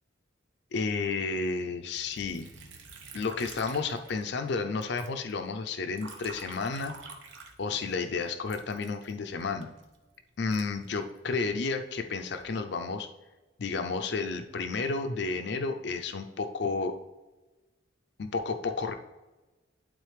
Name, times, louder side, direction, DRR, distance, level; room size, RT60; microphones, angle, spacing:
voice 1, 0.7-2.5 3.1-6.9 7.6-9.7 10.4-13.1 13.6-17.0 18.2-18.9, left 4 dB, 65° left, 7 dB, 0.5 m, -31 dB
Liquid, 2.0-4.5 4.8-8.0 8.5-11.5 12.0-12.6, right 4 dB, 80° right, 1.0 m, -49 dB
11.5 x 3.9 x 3.3 m, 1.1 s
head